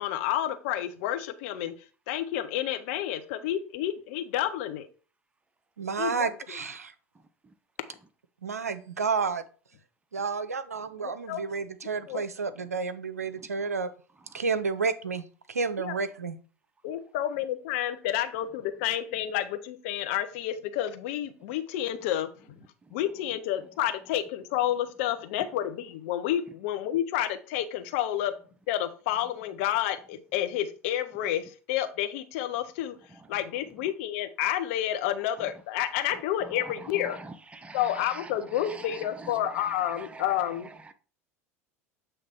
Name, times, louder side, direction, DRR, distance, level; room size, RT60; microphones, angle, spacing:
voice 1, 0.0-1.7 2.1-4.9 6.0-6.3 11.0-11.4 12.1-12.2 15.8-15.9 16.8-22.3 22.9-28.3 28.7-33.0 33.3-37.2 37.7-40.7, left 12 dB, 60° left, 0.8 m, -30 dB
voice 2, 5.8-6.9 8.4-9.4 10.1-13.9 14.3-16.4, right 5 dB, 85° right, 0.5 m, -30 dB
voice 3, 7.1-7.5 13.3-13.5 14.2-14.4 22.8-23.0 33.1-33.4 35.3-35.5 36.0-40.9, right 3 dB, 15° right, 0.8 m, -46 dB
7.7 x 3.2 x 4.4 m
figure-of-eight pair, 75°, 8 cm